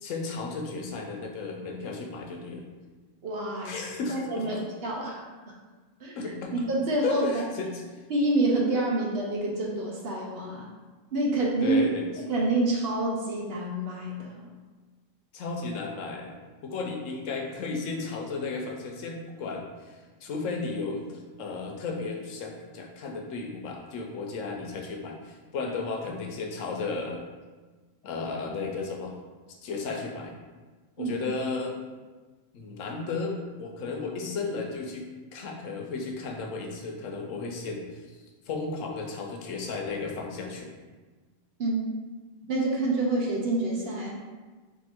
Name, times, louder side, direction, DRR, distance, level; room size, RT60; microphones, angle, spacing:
voice 1, 0.0-2.7 3.6-4.6 6.1-6.6 7.0-7.8 11.6-12.1 15.3-16.3 16.6-27.2 28.0-29.1 29.5-30.3 31.0-31.8 32.5-38.2 38.5-40.7, left 4 dB, 80° left, 1 dB, 1.0 m, -34 dB
voice 2, 3.2-3.8 4.1-5.5 6.0-7.4 8.1-10.7 11.1-11.8 12.2-14.4 31.0-31.2 41.6-41.9 42.5-44.2, right 2 dB, 55° right, -2 dB, 0.9 m, -28 dB
3.6 x 2.6 x 4.3 m, 1.3 s
omnidirectional pair, 1.3 m